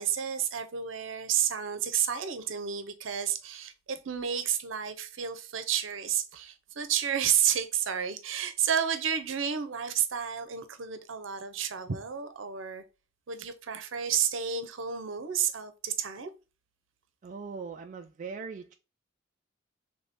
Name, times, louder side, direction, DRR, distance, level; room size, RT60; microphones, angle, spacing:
voice 1, 0.0-12.8 13.3-16.3, right 8 dB, 70° right, 0.7 m, -31 dB
voice 2, 17.2-18.7, right 5 dB, 40° right, 0.3 m, -40 dB
3.5 x 3.4 x 4.0 m
head